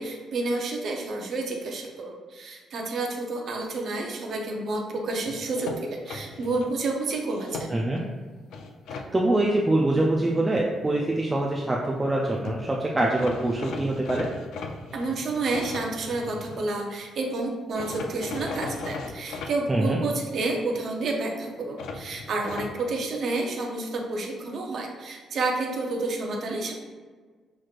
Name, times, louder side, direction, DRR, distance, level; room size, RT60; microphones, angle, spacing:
voice 1, 0.0-7.7 14.9-26.7, right 2 dB, 50° right, 1 dB, 0.7 m, -30 dB
sound 1, 5.3-6.7 7.2-8.0 8.5-9.1 12.2-12.3 12.4-12.6 13.2-16.7 17.8-19.5 21.8-22.7, left 4 dB, 80° left, 0.4 m, -37 dB
voice 2, 7.7-8.0 8.9-14.3 19.7-20.0, right 1 dB, 10° right, -2 dB, 0.3 m, -24 dB
5.9 x 3.1 x 2.4 m, 1.4 s
cardioid pair, 170°, 0 cm